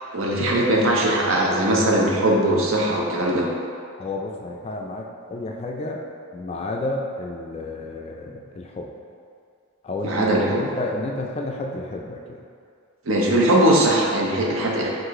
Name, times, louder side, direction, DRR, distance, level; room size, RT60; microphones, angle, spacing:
voice 1, 0.1-3.5 10.0-10.6 13.1-14.9, right 1 dB, 65° right, -2 dB, 0.7 m, -20 dB
voice 2, 4.0-6.0 6.3-8.9 9.8-12.4, left 2 dB, 30° left, 0 dB, 0.3 m, -31 dB
4.7 x 2.5 x 3.7 m, 2.3 s
head